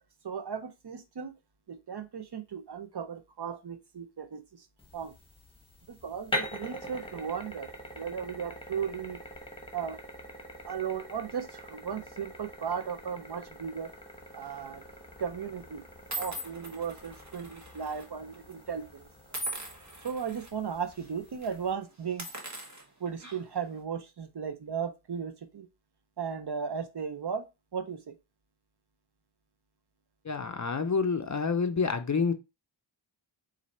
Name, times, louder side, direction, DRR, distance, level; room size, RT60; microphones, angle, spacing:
voice 1, 0.2-1.3 1.7-4.7 4.9-5.1 5.9-7.7 7.9-9.2 9.7-10.0 10.7-13.9 14.3-14.8 15.2-15.8 16.2-19.1 20.0-22.3 23.0-25.7 26.2-27.5 27.7-28.1, right 7 dB, 55° right, 0.6 m, -36 dB
sound 1, 4.8-21.7, equal, 10° left, 1.1 m, -44 dB
sound 2, 14.4-14.7 15.5-15.6 16.1-18.1 18.3-18.5 19.3-20.5 20.9-21.1 21.4-21.5 22.0-23.6, right 1 dB, 35° right, 1.2 m, -40 dB
voice 2, 30.3-32.3, left 5 dB, 40° left, 0.5 m, -28 dB
4.1 x 2.6 x 4.1 m
wide cardioid pair, 50°, 48 cm